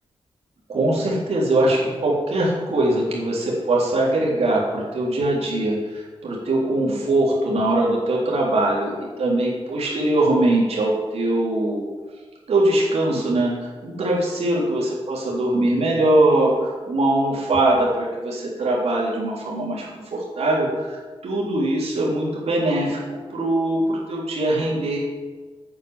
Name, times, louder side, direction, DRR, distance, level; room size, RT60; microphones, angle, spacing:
voice 1, 0.7-11.9 12.5-25.0, right 1 dB, 85° right, -4 dB, 3.8 m, -22 dB
8.8 x 8.6 x 7.4 m, 1.3 s
wide cardioid pair, 180°, 10 cm